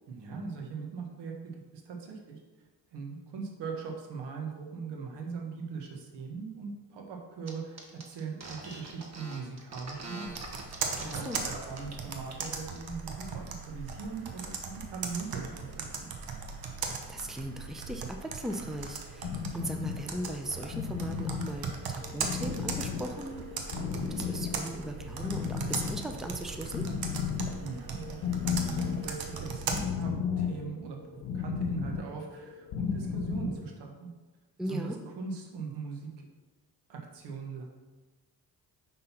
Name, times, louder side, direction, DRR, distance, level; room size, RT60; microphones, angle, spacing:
voice 1, 0.1-2.4 2.9-10.3 10.7-10.8 11.1-16.1 27.6-31.0 31.3-34.1 34.6-36.3 36.9-37.6, right 5 dB, 80° right, 1 dB, 1.4 m, -40 dB
sound 1, 7.5-7.6 7.8-11.4 11.7-12.0 12.3-12.8, right 2 dB, 40° right, 1.4 m, -43 dB
Computer keyboard, 10.3-29.8, right 5 dB, 60° right, 1.1 m, -39 dB
voice 2, 10.9-11.4 17.1-23.4 24.0-26.8 34.6-35.0, right 1 dB, ahead, 4 dB, 0.6 m, -38 dB
sound 2, 19.2-33.6, left 7 dB, 80° left, 0.9 m, -35 dB
5.7 x 3.9 x 5.7 m, 1.2 s
supercardioid pair, 75°, 41 cm